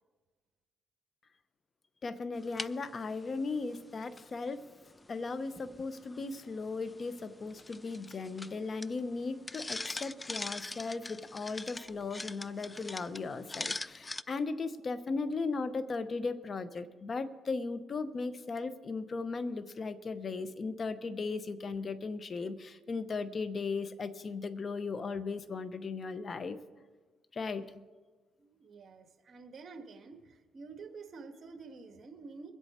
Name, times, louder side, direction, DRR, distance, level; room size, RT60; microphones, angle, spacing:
voice 1, 2.0-4.6 5.1-26.6 27.3-27.6, left 4 dB, 40° left, 13 dB, 0.9 m, -37 dB
sound 1, 2.3-14.2, left 2 dB, 20° left, 0.3 m, -44 dB
voice 2, 28.4-32.5, right 4 dB, 50° right, 6 dB, 1.6 m, -49 dB
22.5 x 8.2 x 4.3 m, 1.3 s
cardioid pair, 90°, 0 cm